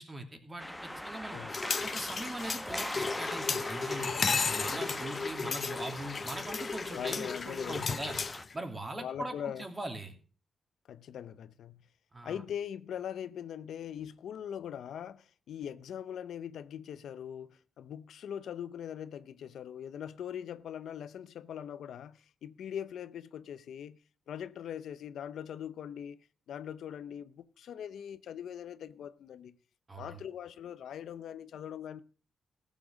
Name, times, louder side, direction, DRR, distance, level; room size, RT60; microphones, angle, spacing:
voice 1, 0.0-1.4 1.8-4.1 4.5-8.2 8.5-10.1 12.1-12.4 29.9-30.2, right 2 dB, 25° right, 2.7 m, -41 dB
sound 1, 0.6-8.4, left 1 dB, 5° left, 1.0 m, -41 dB
sound 2, 1.5-8.5, left 5 dB, 45° left, 0.7 m, -34 dB
voice 2, 4.1-4.6 5.7-5.8 6.9-7.9 9.0-9.7 10.9-11.9 12.2-24.0 24.3-29.5 30.0-32.0, left 9 dB, 80° left, 0.6 m, -41 dB
15.5 x 7.5 x 6.3 m
cardioid pair, 95°, 0 cm